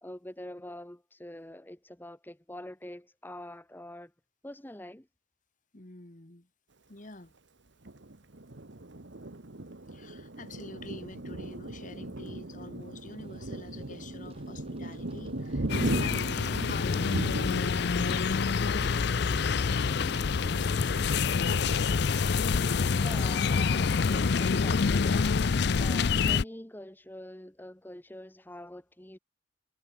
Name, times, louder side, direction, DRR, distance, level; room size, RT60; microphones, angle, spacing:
voice 1, 0.0-4.1 4.4-5.1 23.0-25.3 25.8-29.2, left 1 dB, 10° left, 1.0 m, -45 dB
voice 2, 5.7-6.5 6.9-7.3 9.9-21.8, left 3 dB, 40° left, 1.7 m, -47 dB
Thunder, 7.8-22.2 22.6-22.8 23.1-23.7, right 1 dB, 60° right, 1.4 m, -38 dB
sound 1, 12.8-25.6, equal, 30° right, 3.5 m, -50 dB
sound 2, 15.7-26.4, left 5 dB, 55° left, 0.5 m, -27 dB
head